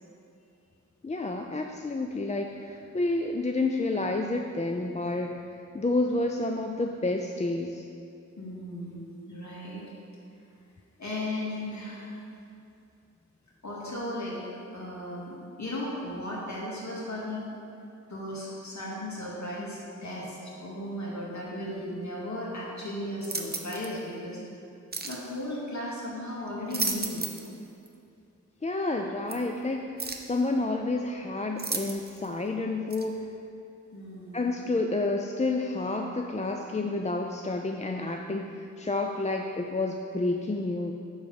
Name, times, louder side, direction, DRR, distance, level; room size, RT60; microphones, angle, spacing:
voice 1, 1.0-5.4 5.7-7.8 28.6-33.3 34.3-40.9, left 2 dB, 25° left, 3 dB, 0.4 m, -29 dB
voice 2, 8.4-9.9 11.0-12.1 13.6-14.4 14.7-17.4 18.1-24.4 25.0-27.3 33.9-34.5, left 1 dB, 65° left, -5 dB, 2.3 m, -36 dB
sound 1, 23.2-23.9 24.9-25.2 26.5-27.5 27.9-28.0 29.3-29.4 30.0-30.3 31.6-32.3 32.9-33.1, right 3 dB, 30° right, 0.8 m, -33 dB
10.5 x 4.0 x 7.0 m, 2.6 s
wide cardioid pair, 85°, 30 cm